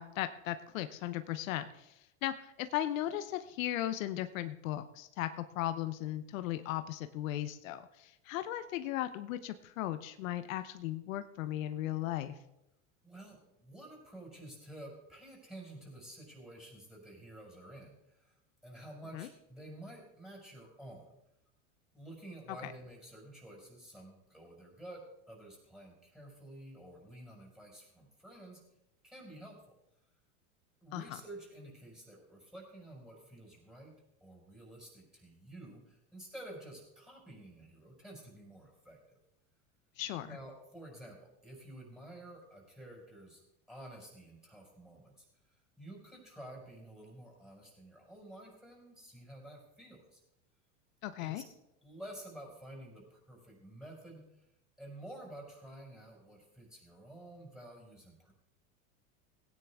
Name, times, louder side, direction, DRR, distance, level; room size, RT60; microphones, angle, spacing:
voice 1, 0.0-12.4 19.1-19.3 22.6-22.7 30.9-31.2 40.0-40.4 51.0-51.4, left 13 dB, 75° left, 11 dB, 0.8 m, -37 dB
voice 2, 13.0-21.1 21.9-28.6 29.0-29.7 30.8-39.0 40.2-43.4 43.7-50.2 51.2-51.4 51.8-54.5 54.8-58.3, right 1 dB, ahead, -2 dB, 5.0 m, -51 dB
17.0 x 9.7 x 3.5 m, 0.87 s
hypercardioid pair, 105°, 40 cm